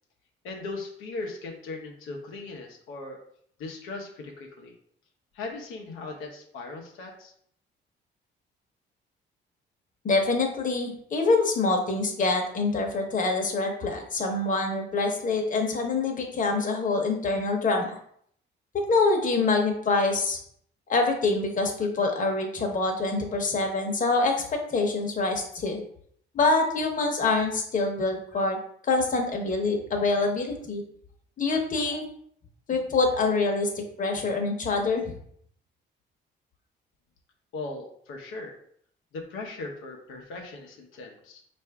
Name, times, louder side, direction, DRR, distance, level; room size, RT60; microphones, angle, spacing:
voice 1, 0.4-3.2 3.6-4.7 5.3-7.3 37.5-38.5 39.1-41.4, left 3 dB, 90° left, 1 dB, 0.7 m, -38 dB
voice 2, 10.0-18.0 18.9-20.4 20.9-25.8 26.3-28.6 28.9-30.8 31.4-32.0 32.7-35.1, left 3 dB, 40° left, 2 dB, 0.9 m, -25 dB
4.5 x 2.6 x 3.4 m, 0.65 s
cardioid pair, 90°, 20 cm